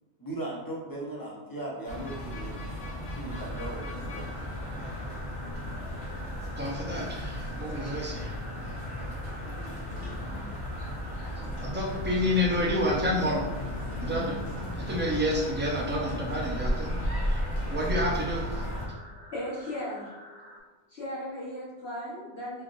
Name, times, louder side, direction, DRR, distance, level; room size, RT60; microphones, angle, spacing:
voice 1, 0.2-2.6 2.9-4.3, right 1 dB, 20° left, -4 dB, 0.8 m, -38 dB
sound 1, 1.9-18.8, equal, 50° left, 1.3 m, -34 dB
sound 2, 3.3-20.6, equal, 75° right, 1.1 m, -48 dB
voice 2, 6.6-8.3 11.6-13.4 14.0-14.4 14.7-16.9 17.3-17.4 17.7-18.7, left 1 dB, 15° right, -3 dB, 0.5 m, -29 dB
voice 3, 19.3-20.1 20.9-22.6, left 1 dB, 70° left, -8 dB, 1.3 m, -36 dB
3.6 x 3.4 x 2.5 m, 1.2 s
omnidirectional pair, 1.1 m